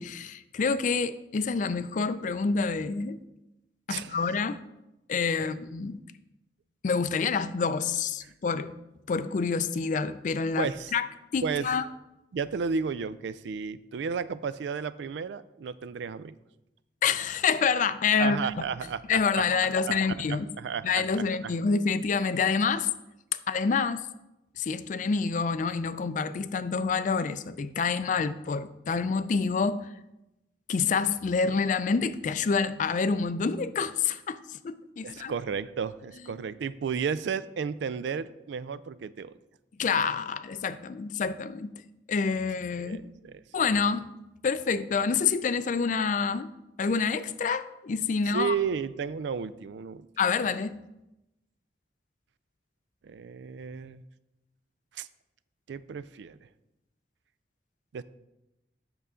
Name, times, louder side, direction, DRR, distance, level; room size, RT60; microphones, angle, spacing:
voice 1, 0.0-3.2 3.9-4.6 5.1-6.0 6.8-8.7 9.1-11.1 11.3-11.8 17.0-18.6 19.1-20.5 20.8-22.9 23.5-24.1 24.6-29.9 30.7-35.3 39.8-41.8 42.1-43.1 43.5-44.1 44.4-46.5 46.8-48.5 50.2-50.8, left 5 dB, 45° left, 14 dB, 0.3 m, -27 dB
voice 2, 3.9-4.2 8.2-8.3 10.6-10.9 11.4-11.7 12.3-16.4 18.2-19.5 19.9-21.6 35.0-39.3 42.8-43.4 48.3-50.1 53.0-54.0 54.9-55.1 55.7-56.5 57.9-58.0, right 6 dB, 80° right, 16 dB, 0.4 m, -33 dB
8.0 x 6.7 x 3.7 m, 0.94 s
head